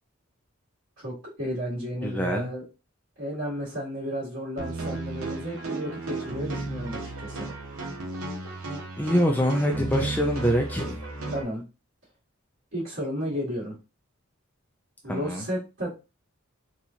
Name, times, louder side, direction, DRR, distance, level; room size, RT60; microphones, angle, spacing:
voice 1, 1.0-2.6 3.2-7.5 11.3-11.6 12.7-13.8 15.0-15.9, equal, 65° right, -8 dB, 2.1 m, -33 dB
voice 2, 2.0-2.5 9.0-10.9 15.1-15.4, equal, 10° left, 2 dB, 0.4 m, -24 dB
sound 1, 4.6-11.4, right 2 dB, 90° right, 1.1 m, -34 dB
4.1 x 2.4 x 2.9 m, 0.29 s
head